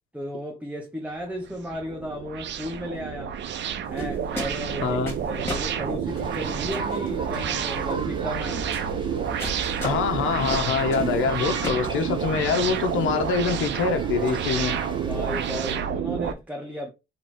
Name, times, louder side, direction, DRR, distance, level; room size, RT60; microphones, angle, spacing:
voice 1, 0.1-3.3 3.8-8.8 15.0-16.9, equal, 5° right, 0.9 m, -35 dB
sound 1, 1.2-16.3, right 8 dB, 65° right, 0.6 m, -29 dB
sound 2, 3.8-11.7, left 1 dB, 10° left, 2.3 m, -37 dB
voice 2, 4.8-5.1 9.8-14.8, left 5 dB, 85° left, 0.8 m, -25 dB
sound 3, 6.0-15.7, right 1 dB, 25° right, 1.7 m, -38 dB
3.5 x 3.0 x 4.2 m
cardioid pair, 90°, 20 cm